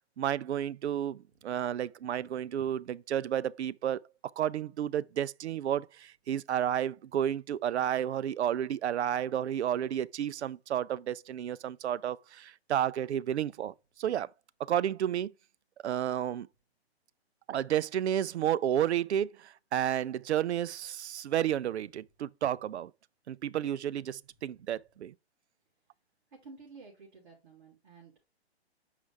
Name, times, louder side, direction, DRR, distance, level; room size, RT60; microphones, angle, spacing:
voice 1, 0.2-4.0 4.4-14.3 14.7-15.3 15.8-16.5 17.5-22.9 23.3-25.1, right 10 dB, 85° right, 0.5 m, -31 dB
voice 2, 26.4-28.2, right 4 dB, 50° right, 2.7 m, -52 dB
6.5 x 4.9 x 3.3 m
hypercardioid pair, 160°, 33 cm